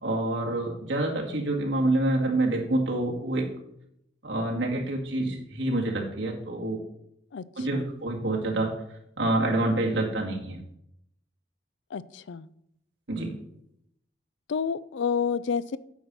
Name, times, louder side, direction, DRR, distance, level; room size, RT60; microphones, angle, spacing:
voice 1, 0.0-3.4 4.2-6.8 7.6-8.7 9.2-10.6 13.1-13.3, right 2 dB, 80° right, 0 dB, 2.1 m, -27 dB
voice 2, 11.9-12.5 14.5-15.8, left 6 dB, 75° left, 17 dB, 0.4 m, -29 dB
9.2 x 6.0 x 5.4 m, 0.76 s
head